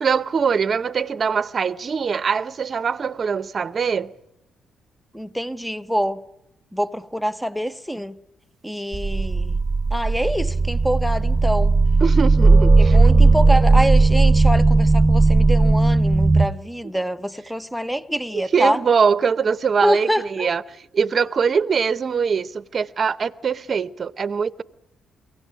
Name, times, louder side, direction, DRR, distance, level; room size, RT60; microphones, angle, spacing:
voice 1, 0.0-4.1 12.0-13.0 18.3-24.6, right 6 dB, 45° right, 0.8 m, -22 dB
voice 2, 5.1-6.2 6.7-8.2 8.6-9.6 9.9-11.7 12.8-18.8 19.8-20.5, equal, ahead, 0.8 m, -25 dB
sound 1, 8.9-16.5, right 3 dB, 20° right, 1.3 m, -16 dB
23.0 x 17.0 x 9.4 m
cardioid pair, 90°, 0 cm